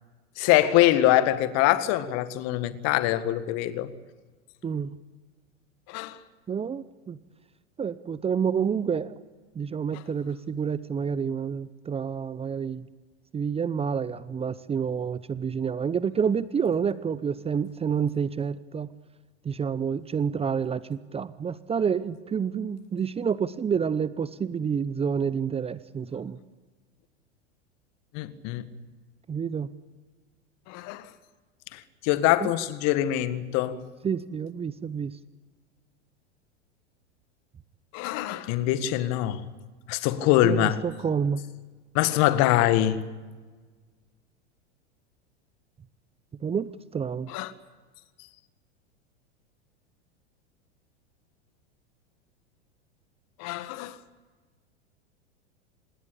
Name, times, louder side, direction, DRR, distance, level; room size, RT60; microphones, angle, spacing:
voice 1, 0.4-3.9 5.9-6.2 9.9-10.0 28.1-28.7 30.7-31.1 31.7-33.8 37.9-39.4 39.9-40.8 42.0-43.0 47.3-47.5 53.4-53.9, left 13 dB, 50° left, 1.8 m, -24 dB
voice 2, 6.5-7.2 7.8-9.2 9.6-12.8 13.3-18.9 19.4-26.4 29.3-29.7 32.4-32.5 34.0-35.1 40.4-41.4 46.4-47.3, right 7 dB, 15° right, 0.8 m, -28 dB
26.0 x 20.5 x 8.5 m
hypercardioid pair, 95°, 34 cm